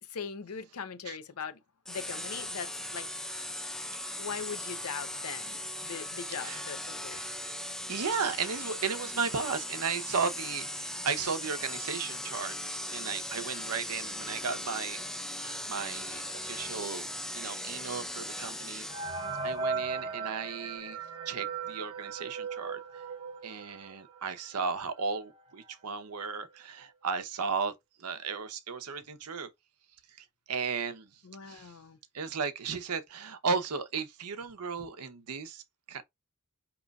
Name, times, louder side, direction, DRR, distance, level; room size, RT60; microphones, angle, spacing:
voice 1, 0.1-1.6 1.9-3.1 4.2-7.4 31.2-32.0, left 6 dB, 70° left, 0.6 m, -40 dB
sound 1, 1.8-19.4, left 1 dB, ahead, 0.3 m, -38 dB
voice 2, 7.9-15.0 15.4-17.1 17.3-18.9 19.4-21.0 21.3-23.0 23.4-27.7 28.0-29.5 30.2-31.1 31.4-31.7 32.1-35.6 35.9-36.0, right 5 dB, 80° right, 0.7 m, -35 dB
sound 2, 18.9-24.3 24.8-24.9 25.1-25.2 26.0-26.1 26.4-26.8, right 4 dB, 20° right, 0.7 m, -37 dB
5.1 x 3.0 x 2.3 m
head